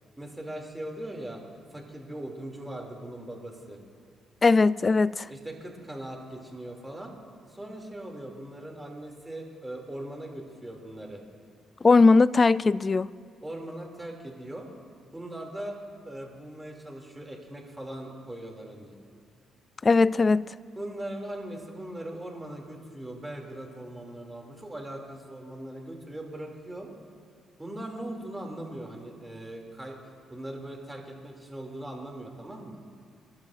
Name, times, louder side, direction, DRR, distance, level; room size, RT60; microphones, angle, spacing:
voice 1, 0.2-1.4 1.7-3.8 5.3-7.1 7.5-11.2 13.4-14.7 15.1-15.8 16.1-19.0 20.8-26.9 27.6-30.0 30.3-32.8, right 1 dB, 10° right, 2.8 m, -40 dB
voice 2, 4.4-5.3 11.8-13.1 19.8-20.5, left 3 dB, 30° left, 0.3 m, -19 dB
29.5 x 12.0 x 2.6 m
cardioid pair, 90°, 0 cm